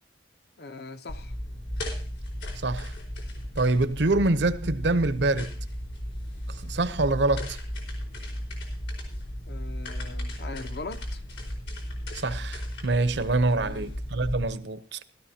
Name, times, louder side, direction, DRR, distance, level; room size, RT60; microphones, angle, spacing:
voice 1, 0.6-1.4 9.5-11.2 13.5-14.0, left 3 dB, 55° left, 0.9 m, -41 dB
sound 1, 1.1-14.4, equal, 85° left, 4.5 m, -35 dB
voice 2, 3.6-5.5 6.5-7.6 12.1-15.0, right 2 dB, 70° right, 0.8 m, -25 dB
16.5 x 13.0 x 2.8 m
head